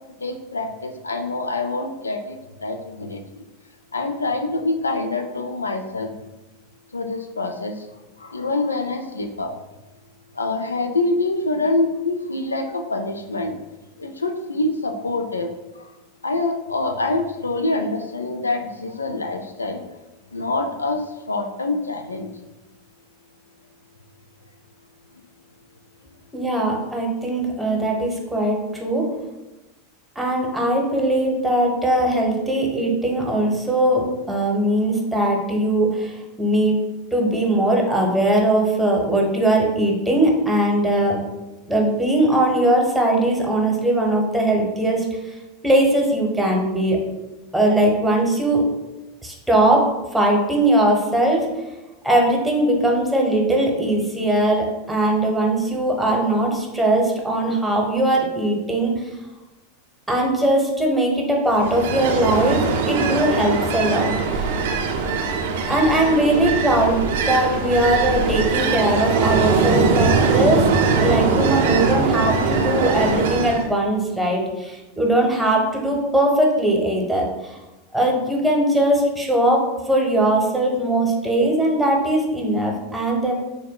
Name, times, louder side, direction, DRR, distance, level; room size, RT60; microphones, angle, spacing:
voice 1, 0.2-3.4 3.9-6.1 6.9-7.9 8.2-9.5 10.4-13.6 14.0-15.9 16.2-19.8 20.3-22.3, left 2 dB, 85° left, 5 dB, 0.3 m, -25 dB
voice 2, 26.3-29.1 30.2-36.8 37.1-41.2 41.7-45.0 45.6-47.0 47.5-48.6 49.2-49.9 50.1-51.5 52.0-58.9 60.1-64.5 65.7-70.7 71.0-77.6 77.9-83.3, right 1 dB, 5° right, -1 dB, 0.8 m, -20 dB
Ocean, 61.5-73.7, right 4 dB, 60° right, 0.5 m, -21 dB
6.2 x 2.2 x 2.2 m, 1.0 s
figure-of-eight pair, 85°, 0 cm